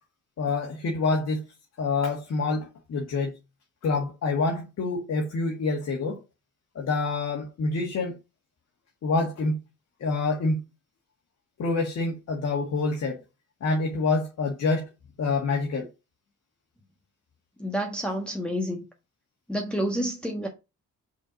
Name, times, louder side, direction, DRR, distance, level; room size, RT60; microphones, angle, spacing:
voice 1, 0.4-1.5 1.8-3.3 3.8-6.2 6.8-8.1 9.0-9.6 10.0-10.6 11.6-13.2 13.6-14.9 15.2-15.9, left 3 dB, 60° left, 2.0 m, -27 dB
voice 2, 17.6-18.8 19.5-20.5, equal, 5° left, 1.4 m, -29 dB
5.0 x 4.5 x 5.7 m
cardioid pair, 90°, 30 cm